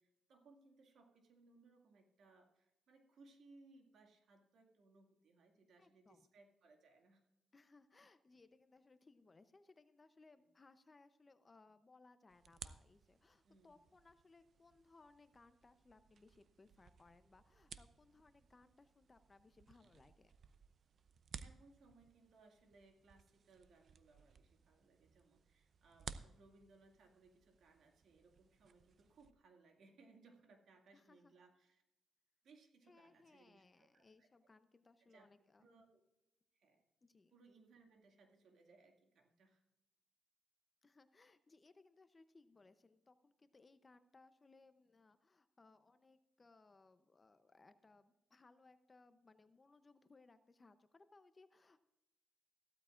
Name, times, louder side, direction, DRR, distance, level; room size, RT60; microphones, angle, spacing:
voice 1, 0.0-7.2 10.4-10.5 13.4-13.9 21.4-31.8 32.4-34.3 35.0-35.3 35.6-36.0 36.5-36.8 37.3-39.6, right 3 dB, 70° right, 3 dB, 2.2 m, -67 dB
voice 2, 5.8-6.2 7.5-20.3 30.9-31.3 32.9-35.6 37.0-37.4 40.8-51.8, left 3 dB, 25° left, 11 dB, 0.7 m, -66 dB
sound 1, 12.3-29.3, right 6 dB, 50° right, 0.6 m, -58 dB
15.0 x 13.0 x 2.5 m, 0.93 s
cardioid pair, 115°, 0 cm